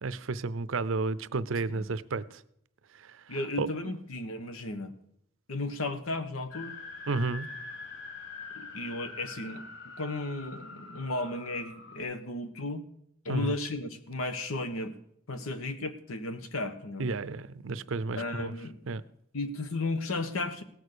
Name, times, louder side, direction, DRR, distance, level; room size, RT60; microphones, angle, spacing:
voice 1, 0.0-2.4 2.9-3.7 7.1-7.5 13.3-13.6 17.0-18.5 18.9-19.0, right 3 dB, 70° right, 0.6 m, -32 dB
voice 2, 3.3-4.9 5.5-6.8 8.5-12.9 13.2-15.0 15.3-17.1 18.2-18.8 19.3-20.6, left 2 dB, 85° left, 1.2 m, -34 dB
sound 1, 6.5-12.0, left 3 dB, 65° left, 2.0 m, -44 dB
17.0 x 6.5 x 6.7 m
head